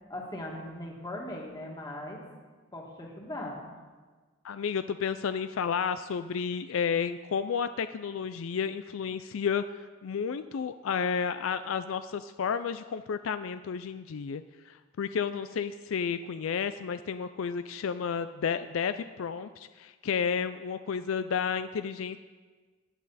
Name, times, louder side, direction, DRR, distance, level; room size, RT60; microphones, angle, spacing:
voice 1, 0.1-2.2 2.7-3.6, left 1 dB, 20° left, -1 dB, 2.1 m, -39 dB
voice 2, 4.4-22.2, left 6 dB, 70° left, 12 dB, 0.4 m, -32 dB
17.0 x 10.5 x 4.1 m, 1.4 s
head